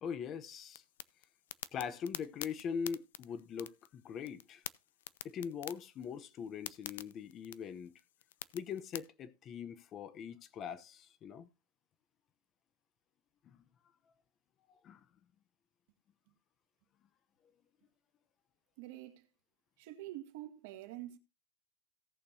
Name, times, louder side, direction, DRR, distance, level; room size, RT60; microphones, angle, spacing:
voice 1, 0.0-0.8 1.7-4.6 5.2-7.9 8.5-11.5 13.4-13.6 14.7-15.0, left 7 dB, 20° left, 0.7 m, -42 dB
sound 1, 0.6-9.0, left 12 dB, 80° left, 0.6 m, -48 dB
voice 2, 18.8-19.3 19.8-21.2, right 15 dB, 45° right, 1.7 m, -46 dB
17.5 x 6.6 x 2.7 m
supercardioid pair, 175°, 0 cm